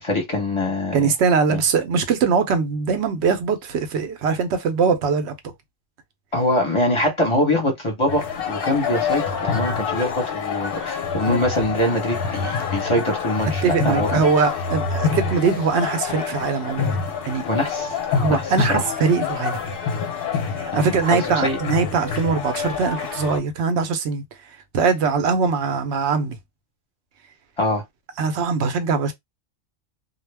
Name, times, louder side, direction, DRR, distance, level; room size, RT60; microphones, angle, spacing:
voice 1, 0.0-1.0 1.5-1.6 6.3-14.1 17.5-18.8 20.7-21.6 27.6-27.8, left 1 dB, 25° left, 0.8 m, -23 dB
voice 2, 0.9-5.3 13.6-17.0 17.2-17.4 18.2-19.8 20.6-24.2 24.7-26.4 28.2-29.1, right 5 dB, 65° right, 0.8 m, -22 dB
sound 1, 8.1-23.4, left 5 dB, 55° left, 0.7 m, -26 dB
2.3 x 2.0 x 3.3 m
omnidirectional pair, 1.4 m